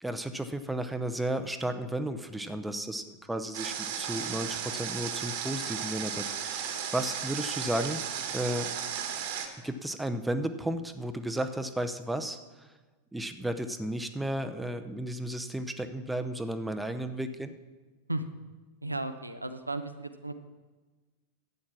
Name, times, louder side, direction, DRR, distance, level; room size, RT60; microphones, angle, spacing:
voice 1, 0.0-8.0 8.3-8.7 9.6-12.7 13.1-17.5, right 1 dB, 5° right, 8 dB, 0.7 m, -33 dB
Water, 3.5-9.5, right 8 dB, 50° right, 1.4 m, -35 dB
voice 2, 18.8-20.3, right 2 dB, 85° right, 8 dB, 0.7 m, -34 dB
11.5 x 8.6 x 6.0 m, 1.3 s
figure-of-eight pair, 90°, 0 cm